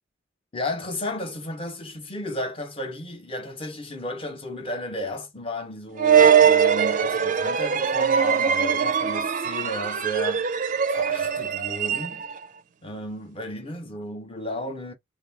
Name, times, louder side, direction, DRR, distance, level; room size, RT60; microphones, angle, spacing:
voice 1, 0.5-10.5 10.9-12.3 12.8-14.9, left 1 dB, 25° left, 0.7 m, -33 dB
sound 1, 6.0-12.4, right 7 dB, 40° right, 0.4 m, -21 dB
2.6 x 2.4 x 3.3 m
head